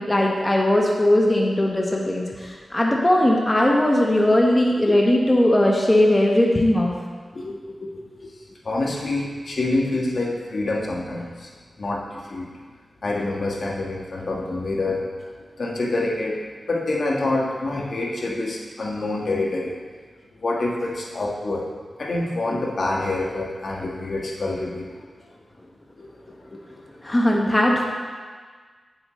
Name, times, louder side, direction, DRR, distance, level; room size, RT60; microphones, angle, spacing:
voice 1, 0.0-6.9 27.0-27.8, left 1 dB, 20° left, -2 dB, 1.0 m, -19 dB
voice 2, 7.3-11.5 11.8-12.5 13.0-15.1 15.6-16.4 16.7-19.7 20.3-21.6 22.0-24.8 25.9-26.1 26.5-26.6 27.3-27.4, left 2 dB, 60° left, -2 dB, 1.3 m, -27 dB
8.8 x 7.6 x 3.1 m, 1.5 s
cardioid pair, 70°, 0 cm